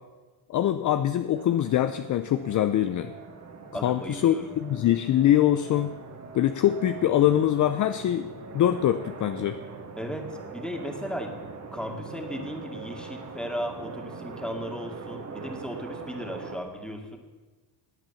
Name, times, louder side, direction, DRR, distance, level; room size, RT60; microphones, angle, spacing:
voice 1, 0.5-3.1 3.8-6.0 6.3-9.6, left 11 dB, 40° left, 11 dB, 0.6 m, -23 dB
sound 1, 1.4-16.6, right 5 dB, 35° right, 2.0 m, -42 dB
voice 2, 3.7-4.5 10.0-11.3 11.7-17.2, equal, ahead, 3 dB, 2.3 m, -36 dB
18.0 x 8.9 x 7.1 m, 1.3 s
cardioid pair, 130°, 48 cm